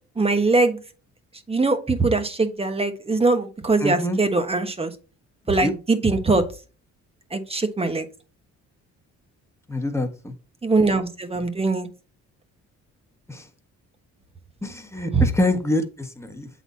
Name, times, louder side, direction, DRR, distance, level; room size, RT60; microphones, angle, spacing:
voice 1, 0.2-0.8 1.5-4.9 5.5-6.5 7.3-8.0 10.6-11.9 15.1-15.2, right 3 dB, 20° right, 8 dB, 1.2 m, -21 dB
voice 2, 3.8-4.2 5.6-5.7 9.7-10.3 13.3-13.5 14.6-16.5, left 1 dB, 10° left, 4 dB, 1.4 m, -25 dB
7.9 x 4.1 x 4.1 m, 0.34 s
cardioid pair, 90°, 30 cm